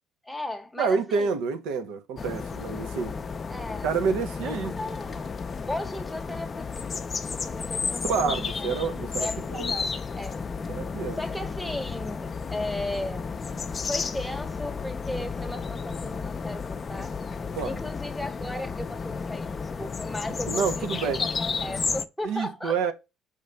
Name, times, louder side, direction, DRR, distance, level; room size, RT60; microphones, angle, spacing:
voice 1, 0.2-1.4 3.5-3.9 4.4-5.3 5.7-6.9 7.4-8.7 9.2-10.4 11.2-13.3 13.8-17.2 17.6-22.8, left 1 dB, 5° left, 0.9 m, -36 dB
voice 2, 0.8-3.2 3.8-4.8 8.1-9.3 9.6-9.7 10.7-11.2 17.5-17.8 20.5-21.2 22.2-22.9, right 5 dB, 75° right, 0.7 m, -28 dB
sound 1, 2.2-22.0, left 5 dB, 35° left, 0.5 m, -32 dB
5.1 x 2.6 x 3.3 m
supercardioid pair, 70°, 0 cm